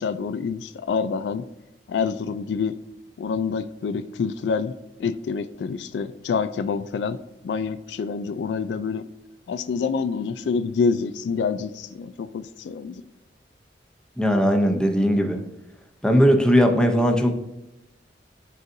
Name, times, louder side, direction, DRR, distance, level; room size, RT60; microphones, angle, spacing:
voice 1, 0.0-1.5 1.9-2.8 3.2-9.0 9.5-13.0, left 5 dB, 75° left, 13 dB, 0.3 m, -27 dB
voice 2, 14.2-15.4 16.0-17.3, equal, 5° left, 4 dB, 0.6 m, -19 dB
10.5 x 3.9 x 2.6 m, 0.92 s
head